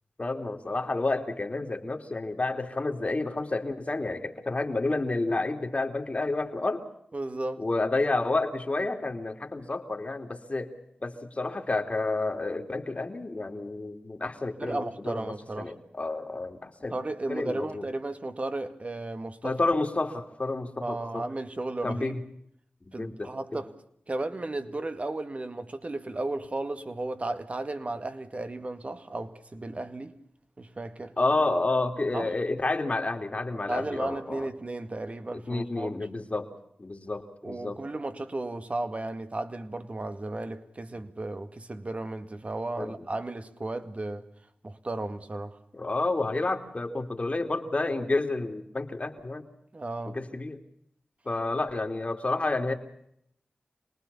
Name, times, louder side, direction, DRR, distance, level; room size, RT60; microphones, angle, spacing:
voice 1, 0.2-6.9 7.6-10.7 11.0-17.0 17.3-17.8 19.4-21.2 21.8-22.2 22.8-23.6 31.2-34.5 35.3-36.5 36.8-37.8 42.8-43.0 45.7-49.4 50.1-50.6 51.2-52.7, left 2 dB, 45° left, 3.0 m, -30 dB
voice 2, 7.1-7.6 14.6-15.7 16.9-19.6 20.8-22.2 22.9-23.7 24.1-30.1 30.6-31.1 32.1-32.3 33.7-36.0 37.4-44.3 44.6-45.6 49.7-50.2, right 2 dB, 45° right, 2.0 m, -34 dB
27.0 x 19.5 x 7.1 m
cardioid pair, 45°, 3 cm